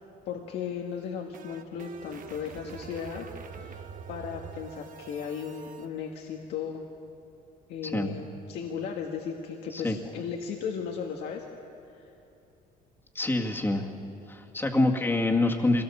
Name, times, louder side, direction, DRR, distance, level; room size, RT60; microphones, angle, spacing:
voice 1, 0.3-6.8 7.7-11.5 11.9-12.1, left 7 dB, 80° left, 1 dB, 1.5 m, -36 dB
sound 1, 0.9-5.9, right 6 dB, 55° right, 1.1 m, -45 dB
voice 2, 7.8-8.1 9.7-10.0 13.1-13.9 14.3-15.8, left 2 dB, 15° left, 1 dB, 2.0 m, -26 dB
23.5 x 18.0 x 7.2 m, 2.8 s
cardioid pair, 110°, 17 cm